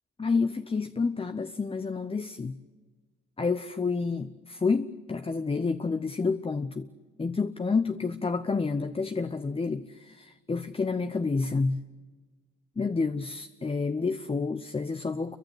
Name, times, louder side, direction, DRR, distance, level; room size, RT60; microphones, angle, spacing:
voice 1, 0.2-2.6 3.4-6.9 7.2-11.8 12.8-15.4, left 4 dB, 20° left, 10 dB, 0.8 m, -29 dB
28.5 x 23.5 x 7.9 m, 1.4 s
cardioid pair, 90°, 30 cm